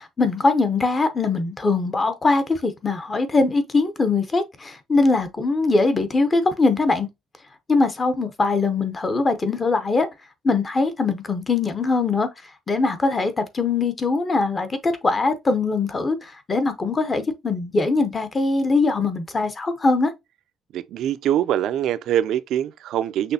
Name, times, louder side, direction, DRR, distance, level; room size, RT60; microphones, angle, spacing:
voice 1, 0.0-7.1 7.7-10.1 10.4-12.3 12.7-20.1, left 3 dB, 25° left, 0.6 m, -22 dB
voice 2, 20.7-23.3, right 11 dB, 70° right, 0.4 m, -23 dB
6.0 x 3.1 x 2.7 m
cardioid pair, 160°, 0 cm